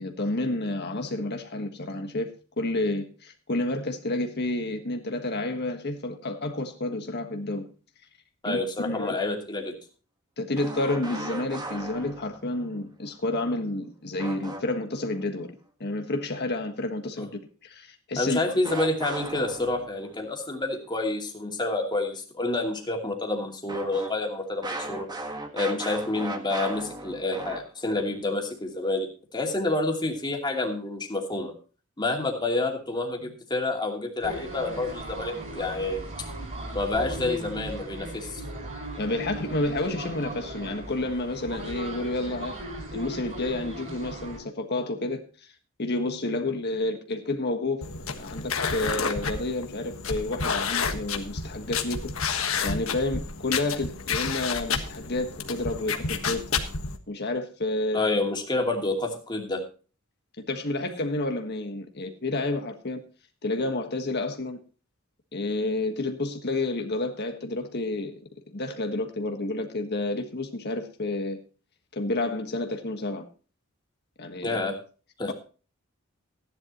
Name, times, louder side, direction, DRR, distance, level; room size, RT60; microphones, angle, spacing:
voice 1, 0.0-7.7 8.4-8.6 8.8-9.2 10.4-15.5 15.8-18.4 39.0-42.6 42.9-45.2 45.8-47.8 48.2-56.5 57.1-58.1 60.5-63.0 63.4-64.6 65.3-68.1 68.5-71.4 71.9-73.2 74.2-74.6 75.3-75.4, left 2 dB, 50° left, 1.5 m, -30 dB
voice 2, 8.4-9.8 17.2-17.3 18.2-25.1 25.5-31.5 32.0-36.1 36.7-38.4 57.9-59.6 74.4-74.8 75.2-75.3, left 2 dB, 20° left, 2.6 m, -28 dB
sound 1, 10.6-12.5 14.2-15.0 18.6-20.1 23.7-28.0, right 2 dB, 20° right, 1.6 m, -37 dB
sound 2, 34.2-44.4, right 1 dB, 35° right, 4.8 m, -37 dB
sound 3, 47.8-57.0, left 5 dB, 75° left, 1.5 m, -30 dB
15.5 x 10.5 x 3.0 m
head